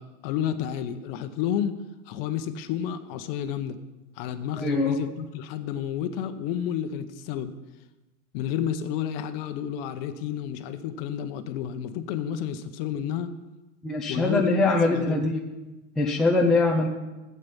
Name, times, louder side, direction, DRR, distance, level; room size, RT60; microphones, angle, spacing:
voice 1, 0.0-1.8 2.1-3.8 4.2-7.5 8.3-13.3 14.1-15.3, left 9 dB, 40° left, 10 dB, 0.9 m, -31 dB
voice 2, 4.6-5.0 13.8-15.4 16.0-16.9, left 2 dB, ahead, -1 dB, 0.4 m, -22 dB
11.5 x 8.7 x 5.6 m, 1.1 s
hypercardioid pair, 135°, 44 cm